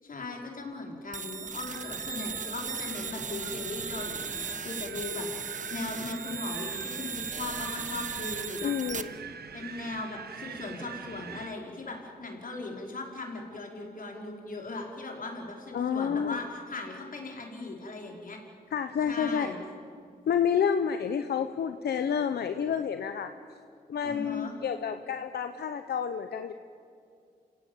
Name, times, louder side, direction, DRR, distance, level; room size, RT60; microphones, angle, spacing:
voice 1, 0.0-8.7 9.5-18.4 19.1-19.6 24.0-24.6, left 2 dB, 60° left, 1 dB, 4.9 m, -38 dB
sound 1, 1.1-9.0, right 5 dB, 50° right, 1.2 m, -37 dB
Wind, 1.6-11.6, right 7 dB, 80° right, 1.2 m, -44 dB
voice 2, 8.6-9.1 15.7-16.4 18.7-19.5 20.3-23.3 23.9-26.5, left 7 dB, 85° left, 8 dB, 0.8 m, -29 dB
28.5 x 17.0 x 8.9 m, 2.4 s
cardioid pair, 60°, 16 cm